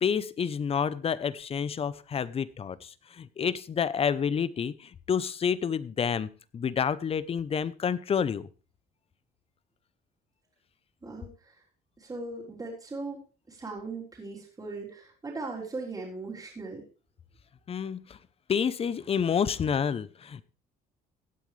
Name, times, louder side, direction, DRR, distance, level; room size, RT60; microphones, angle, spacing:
voice 1, 0.0-8.5 17.7-18.2 18.5-20.4, left 7 dB, 35° left, 17 dB, 0.7 m, -29 dB
voice 2, 11.0-11.5 12.0-13.2 13.5-16.8, right 3 dB, 20° right, -3 dB, 3.7 m, -38 dB
16.5 x 9.2 x 3.3 m, 0.35 s
cardioid pair, 110°, 17 cm